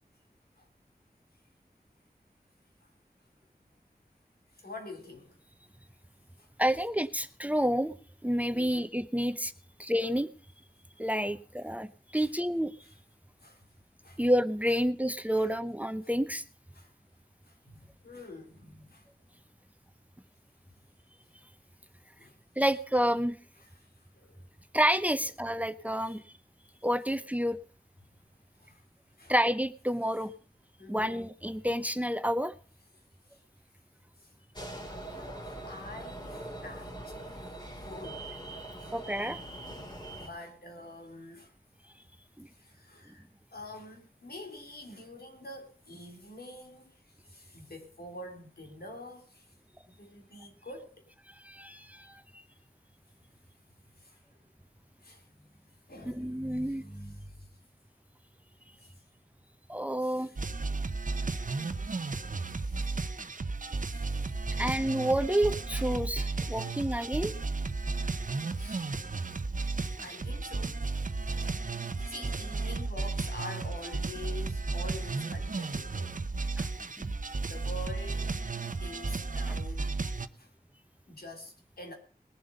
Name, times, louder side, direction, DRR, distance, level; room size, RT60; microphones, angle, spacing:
voice 1, 4.5-5.4 6.4-6.5 8.5-8.9 11.3-11.4 12.2-12.3 13.4-13.6 14.0-14.2 15.4-15.5 16.0-16.1 16.7-16.9 17.4-19.0 22.2-22.4 23.6-23.9 24.1-24.5 28.6-28.8 29.2-29.3 30.8-31.1 33.3-33.4 34.2-34.3 35.0-39.0 40.2-41.5 42.5-43.2 43.5-49.5 49.8-51.1 51.7-52.1 53.9-54.2 55.0-55.6 55.9-57.5 58.8-58.9 60.0-60.4 61.8-63.2 63.7-64.6 66.4-66.6 68.5-68.9 70.0-76.3 76.9-77.0 77.4-78.4 78.7-80.0 80.4-80.5 81.1-81.9, left 1 dB, 90° left, 3.4 m, -47 dB
voice 2, 6.6-8.0 8.2-9.5 9.8-10.3 11.0-12.7 14.2-16.4 22.6-23.4 24.7-26.2 26.8-27.6 29.3-30.3 30.9-32.5 38.9-39.4 42.4-42.5 51.4-52.4 56.1-56.8 59.7-60.3 64.6-67.3 76.6-76.7 77.0-77.1, equal, 10° right, 0.8 m, -29 dB
sound 1, 34.5-40.3, right 1 dB, 25° left, 3.5 m, -42 dB
sound 2, 60.4-80.3, right 3 dB, 60° right, 0.8 m, -34 dB
20.5 x 7.8 x 5.3 m
wide cardioid pair, 60°, 16 cm